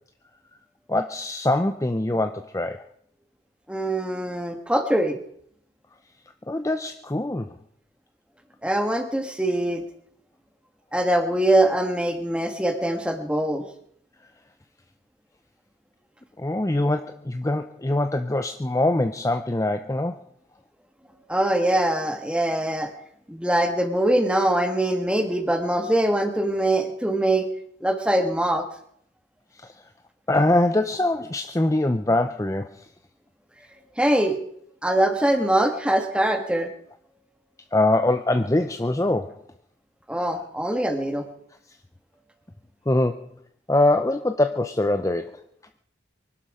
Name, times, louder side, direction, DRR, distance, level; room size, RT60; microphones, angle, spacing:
voice 1, 0.9-2.8 6.5-7.5 16.4-20.2 29.6-29.7 30.3-32.7 37.7-39.4 42.9-43.2 43.7-45.4, left 1 dB, 15° left, 8 dB, 0.6 m, -23 dB
voice 2, 3.7-5.2 8.6-9.8 10.9-13.6 21.3-22.9 23.3-27.5 27.8-28.6 34.0-34.4 34.8-36.7 40.1-41.2, right 1 dB, 5° right, 6 dB, 1.6 m, -23 dB
24.0 x 12.0 x 4.9 m, 0.67 s
head